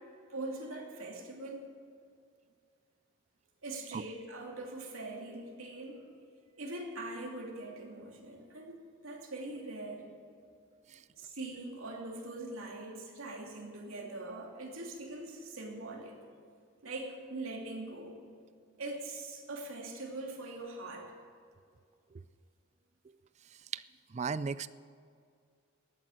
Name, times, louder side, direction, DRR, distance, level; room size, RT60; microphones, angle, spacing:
voice 1, 0.3-1.6 3.6-6.1 6.6-8.8 9.0-10.1 11.2-16.2 16.8-18.2 18.8-21.1, right 2 dB, 85° right, 0 dB, 2.7 m, -42 dB
voice 2, 24.1-24.7, right 5 dB, 35° right, 16 dB, 0.3 m, -35 dB
13.5 x 9.1 x 7.7 m, 2.3 s
head